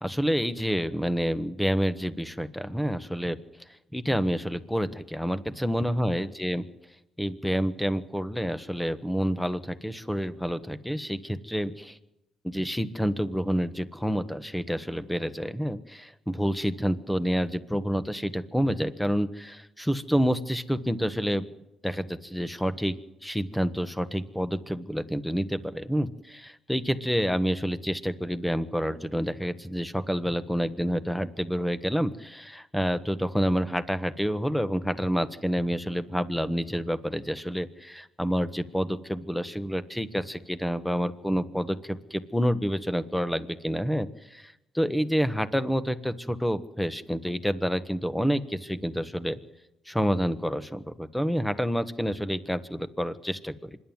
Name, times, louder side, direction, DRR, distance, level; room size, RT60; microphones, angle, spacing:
voice 1, 0.0-3.4 3.9-6.6 7.2-12.0 12.4-21.5 21.8-22.9 23.2-49.4 49.9-53.8, equal, 5° left, 13 dB, 1.3 m, -28 dB
25.5 x 11.0 x 9.5 m, 0.91 s
cardioid pair, 90°, 0 cm